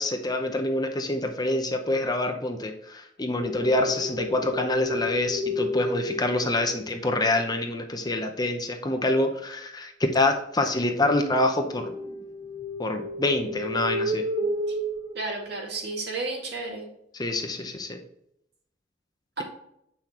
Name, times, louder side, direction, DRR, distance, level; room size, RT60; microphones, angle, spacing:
voice 1, 0.0-11.9 12.8-14.3 17.1-18.0, left 2 dB, 20° left, 5 dB, 0.7 m, -26 dB
sound 1, 3.4-7.1 11.5-16.0, left 1 dB, 20° right, 1.1 m, -32 dB
voice 2, 15.1-16.9 19.4-19.5, right 3 dB, 55° right, 0 dB, 2.1 m, -32 dB
8.4 x 5.9 x 3.0 m, 0.76 s
head